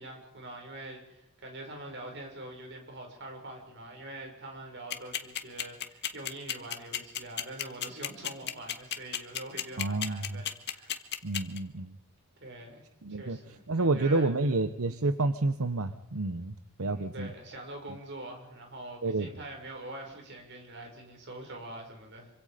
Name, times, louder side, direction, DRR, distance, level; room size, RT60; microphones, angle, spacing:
voice 1, 0.0-11.0 12.4-12.8 13.1-14.6 16.8-22.3, right 1 dB, 55° right, 2 dB, 6.3 m, -44 dB
sound 1, 4.9-11.6, left 10 dB, 50° left, 1.8 m, -32 dB
voice 2, 9.8-10.4 11.2-11.9 13.0-13.4 13.7-17.3 19.0-19.3, right 2 dB, 80° right, 11 dB, 1.0 m, -29 dB
26.5 x 25.5 x 5.2 m, 0.79 s
head